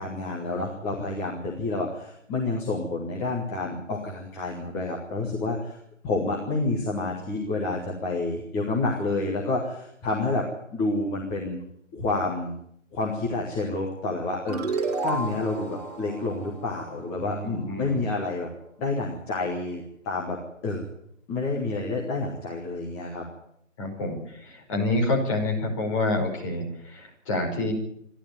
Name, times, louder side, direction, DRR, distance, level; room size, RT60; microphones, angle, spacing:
voice 1, 0.0-5.8 6.0-11.6 11.9-12.5 12.9-18.5 18.8-20.8 21.3-23.2, left 2 dB, 5° left, -3 dB, 1.1 m, -29 dB
sound 1, 14.5-17.7, right 3 dB, 30° right, 2.7 m, -32 dB
voice 2, 17.2-18.1 23.8-27.7, left 2 dB, 25° left, 1 dB, 5.4 m, -28 dB
27.0 x 11.5 x 9.0 m, 0.72 s
figure-of-eight pair, 145°, 39 cm